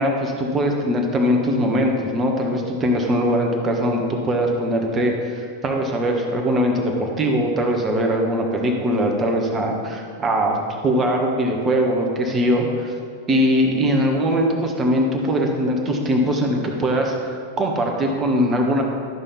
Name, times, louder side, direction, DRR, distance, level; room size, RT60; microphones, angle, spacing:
voice 1, 0.0-12.9 13.3-18.8, equal, 25° right, 2 dB, 1.3 m, -21 dB
12.0 x 5.5 x 4.2 m, 2.2 s
figure-of-eight pair, 90°, 0 cm